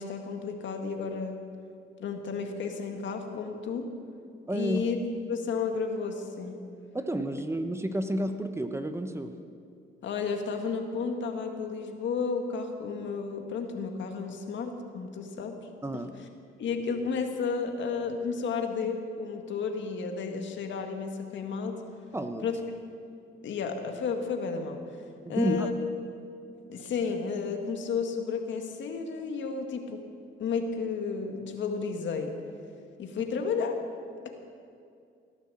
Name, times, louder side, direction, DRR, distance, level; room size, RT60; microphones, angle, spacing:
voice 1, 0.0-1.4 2.0-3.9 4.5-5.0 5.3-6.5 10.0-15.6 16.2-16.3 16.6-21.8 22.4-22.6 23.4-25.0 25.3-25.8 26.7-30.0 30.4-32.3 33.0-33.7, left 5 dB, 70° left, 4 dB, 1.9 m, -32 dB
voice 2, 4.5-4.8 6.9-9.3 15.8-16.1 22.1-22.5 25.3-25.7, right 1 dB, 15° right, 7 dB, 1.0 m, -30 dB
17.5 x 10.0 x 7.7 m, 2.4 s
cardioid pair, 90°, 20 cm